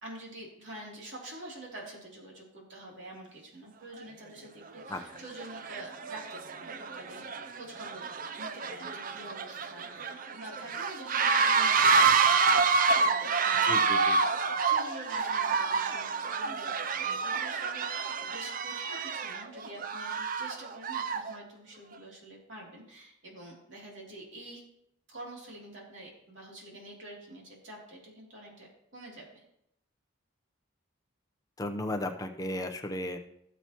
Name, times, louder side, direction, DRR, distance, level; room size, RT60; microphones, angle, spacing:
voice 1, 0.0-7.2 7.5-8.0 8.4-24.6 25.1-29.4, right 1 dB, 55° right, -3 dB, 3.0 m, -47 dB
sound 1, 4.0-4.1 4.8-5.0 5.4-21.3, right 5 dB, 40° right, 0.5 m, -28 dB
voice 2, 13.6-14.2 31.6-33.2, left 1 dB, 15° left, 4 dB, 0.7 m, -35 dB
17.5 x 7.1 x 3.0 m, 0.77 s
head